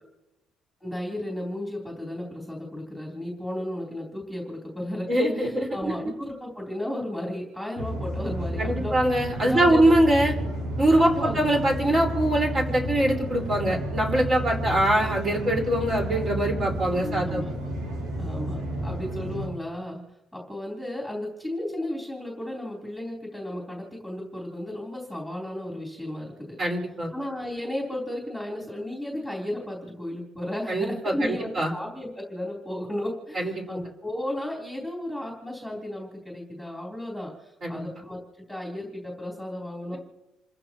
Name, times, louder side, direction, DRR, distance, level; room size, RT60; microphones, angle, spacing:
voice 1, 0.8-9.0 9.4-9.8 11.2-11.3 17.0-17.5 18.2-20.0 20.3-26.6 27.1-40.0, left 1 dB, ahead, -3 dB, 3.6 m, -34 dB
voice 2, 5.1-5.9 8.6-10.3 10.8-17.4 26.6-27.1 30.7-31.1 31.6-31.7 33.3-33.5 37.6-37.8, right 1 dB, 30° right, -1 dB, 4.7 m, -23 dB
sound 1, 7.8-19.5, right 1 dB, 90° right, 7.0 m, -31 dB
29.0 x 15.0 x 3.0 m, 0.97 s
cardioid pair, 170°, 0 cm